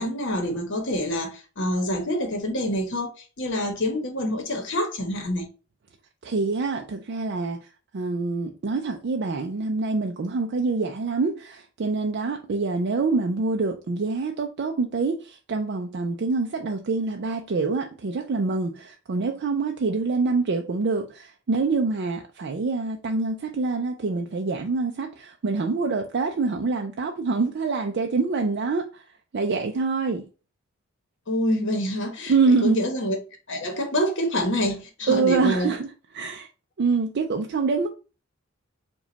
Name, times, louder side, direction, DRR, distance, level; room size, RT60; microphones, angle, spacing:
voice 1, 0.0-5.5 31.3-33.2 33.5-35.7, equal, 60° left, 1.2 m, -26 dB
voice 2, 6.2-7.7 7.9-29.0 29.3-30.3 32.3-32.8 35.1-35.9 36.1-36.5 36.8-37.9, right 4 dB, 55° right, 0.4 m, -25 dB
4.9 x 2.3 x 3.9 m
head